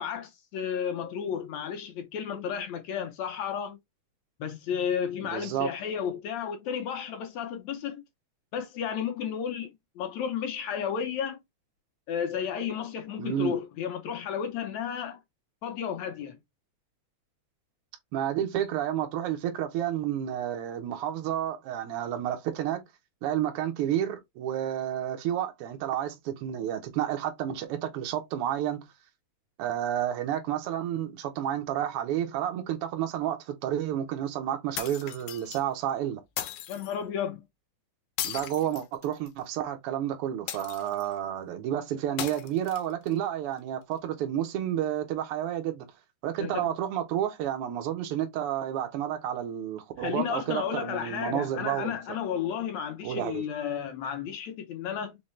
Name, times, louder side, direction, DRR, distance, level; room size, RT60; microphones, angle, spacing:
voice 1, 0.0-3.8 4.4-8.0 8.5-11.4 12.1-15.2 15.6-16.4 36.7-37.4 46.4-46.6 50.0-55.2, left 8 dB, 75° left, 1.7 m, -32 dB
voice 2, 5.3-5.7 13.2-13.5 18.1-22.8 23.2-28.9 29.6-36.2 38.2-45.9 46.2-52.0 53.0-53.4, right 11 dB, 85° right, 1.3 m, -30 dB
sound 1, 34.8-35.6 36.4-36.9 38.2-39.4 40.5-41.1 42.2-43.1, left 12 dB, 90° left, 2.1 m, -37 dB
5.4 x 2.1 x 3.1 m
omnidirectional pair, 3.5 m